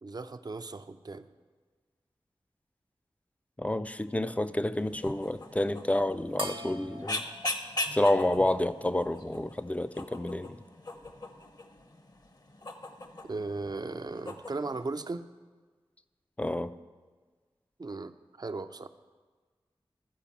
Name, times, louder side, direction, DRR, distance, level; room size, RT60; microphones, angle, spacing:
voice 1, 0.0-1.3 7.9-8.0 13.2-15.2 17.8-18.9, right 3 dB, 45° right, 10 dB, 0.5 m, -37 dB
voice 2, 3.6-7.2 7.9-10.6 16.4-16.7, left 1 dB, 15° left, 12 dB, 0.4 m, -29 dB
sound 1, 4.8-14.8, left 2 dB, 40° left, 0.9 m, -40 dB
sound 2, 6.4-9.2, equal, 65° right, 0.9 m, -43 dB
13.5 x 5.0 x 7.1 m, 1.4 s
wide cardioid pair, 50°, 10 cm